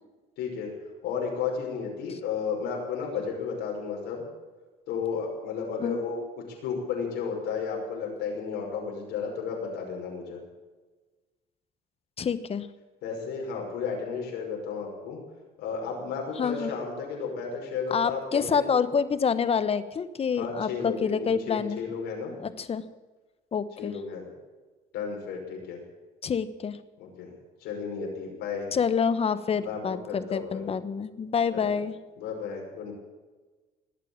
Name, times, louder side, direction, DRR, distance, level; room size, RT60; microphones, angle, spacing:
voice 1, 0.4-0.7 1.0-4.2 4.9-6.2 6.6-10.4 13.0-15.2 15.6-18.7 20.4-22.3 23.8-24.3 24.9-25.8 27.0-27.3 27.6-28.7 29.6-30.7 31.5-31.7 32.2-32.9, left 5 dB, 90° left, 0 dB, 5.8 m, -33 dB
voice 2, 12.2-12.7 16.4-16.7 17.9-21.8 22.4-22.8 23.5-24.0 26.2-26.8 28.7-31.9, left 6 dB, 35° left, 13 dB, 1.2 m, -27 dB
19.0 x 8.5 x 8.9 m, 1.3 s
cardioid pair, 110°, 17 cm